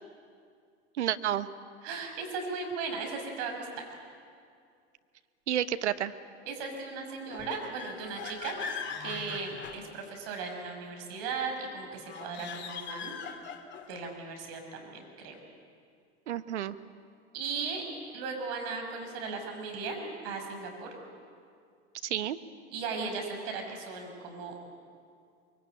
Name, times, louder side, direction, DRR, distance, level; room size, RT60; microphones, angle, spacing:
voice 1, 1.0-1.5 5.5-6.1 16.3-16.8 22.0-22.4, right 11 dB, 80° right, 12 dB, 1.1 m, -30 dB
voice 2, 1.8-3.7 6.5-8.6 9.0-13.2 13.9-15.4 17.3-17.9 18.1-20.9 22.7-24.5, right 4 dB, 60° right, 3 dB, 6.2 m, -37 dB
sound 1, 7.3-10.4 12.0-14.0, left 6 dB, 30° left, 2.5 m, -41 dB
24.0 x 22.5 x 9.0 m, 2.3 s
hypercardioid pair, 90°, 34 cm